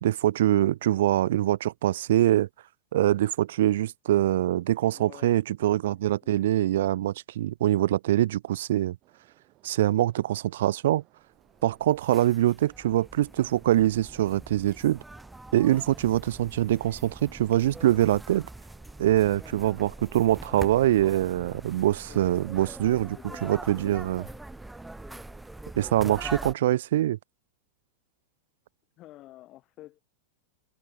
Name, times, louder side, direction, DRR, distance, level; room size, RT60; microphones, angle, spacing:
voice 1, 0.0-2.5 2.9-9.0 9.6-11.0 11.6-15.0 15.5-18.5 19.0-23.2 23.4-24.2 25.8-27.2, right 13 dB, 75° right, 0.4 m, -24 dB
voice 2, 4.9-6.4 22.1-24.4 25.1-25.2 29.0-30.0, left 16 dB, 30° left, 5.2 m, -51 dB
sound 1, 9.0-26.6, right 19 dB, 30° right, 5.0 m, -62 dB
sound 2, 11.5-26.5, right 2 dB, 5° right, 0.7 m, -43 dB
supercardioid pair, 170°, 0 cm